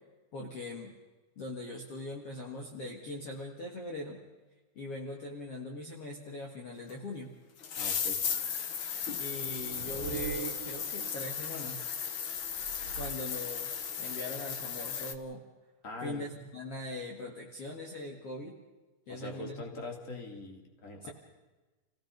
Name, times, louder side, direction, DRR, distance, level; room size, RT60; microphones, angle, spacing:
voice 1, 0.3-0.9 1.4-4.2 4.8-7.3 9.2-11.9 13.0-15.4 16.0-18.5 19.1-19.8 21.0-21.1, left 1 dB, 45° left, 0 dB, 2.7 m, -41 dB
sound 1, 6.9-7.0 7.6-15.1, left 7 dB, 90° left, 1.1 m, -36 dB
voice 2, 7.8-8.2 15.8-16.3 19.1-21.1, left 2 dB, 25° left, 2 dB, 3.0 m, -42 dB
sound 2, 9.4-11.3 12.4-13.9, right 9 dB, 80° right, 2.6 m, -43 dB
29.5 x 18.0 x 5.3 m, 1.2 s
omnidirectional pair, 4.0 m